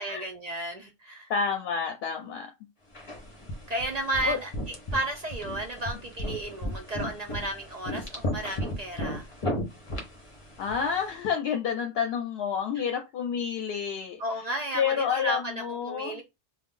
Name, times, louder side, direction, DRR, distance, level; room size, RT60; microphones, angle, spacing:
voice 1, 0.0-1.3 3.0-3.1 3.7-4.5 4.9-9.3 12.8-12.9 14.2-16.2, right 1 dB, 50° right, 0.6 m, -33 dB
voice 2, 1.3-2.5 4.2-4.4 10.6-14.2 14.7-16.2, left 7 dB, 75° left, 0.8 m, -29 dB
sound 1, 2.9-11.1, equal, 35° left, 0.8 m, -35 dB
2.4 x 2.2 x 3.6 m
omnidirectional pair, 1.0 m